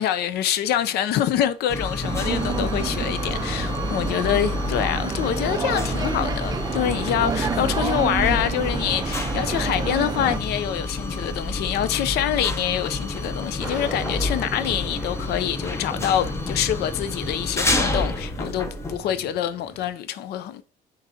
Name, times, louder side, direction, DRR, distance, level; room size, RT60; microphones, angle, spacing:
voice 1, 0.0-20.6, left 10 dB, 70° left, 0.6 m, -25 dB
sound 1, 1.7-19.0, left 2 dB, 15° left, 0.8 m, -29 dB
sound 2, 2.0-10.4, right 5 dB, 25° right, 0.4 m, -29 dB
sound 3, 13.6-19.9, right 1 dB, 5° right, 2.9 m, -39 dB
9.8 x 3.9 x 2.8 m
cardioid pair, 110°, 17 cm